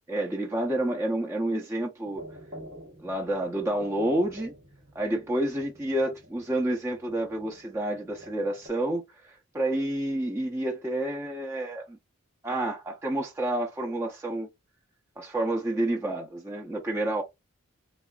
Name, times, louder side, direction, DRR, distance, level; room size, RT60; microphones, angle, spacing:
voice 1, 0.1-2.2 3.0-4.5 4.9-12.0 12.4-14.5 15.2-17.2, right 1 dB, 15° right, 0.7 m, -29 dB
sound 1, 2.1-8.7, equal, 30° right, 1.4 m, -48 dB
4.2 x 2.6 x 2.3 m
head